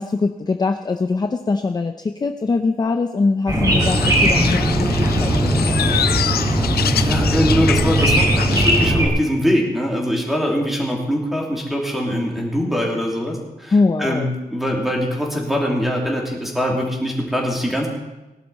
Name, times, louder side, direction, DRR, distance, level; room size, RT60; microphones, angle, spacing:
voice 1, 0.0-4.9 5.2-5.8 13.7-14.3, left 3 dB, 25° left, 7 dB, 0.5 m, -22 dB
sound 1, 3.5-9.1, right 1 dB, 25° right, 3.9 m, -18 dB
sound 2, 3.8-8.9, left 9 dB, 85° left, 0.5 m, -26 dB
voice 2, 7.0-13.7 14.0-17.9, equal, ahead, -2 dB, 2.9 m, -22 dB
19.0 x 11.5 x 4.1 m, 1.1 s
wide cardioid pair, 160°, 16 cm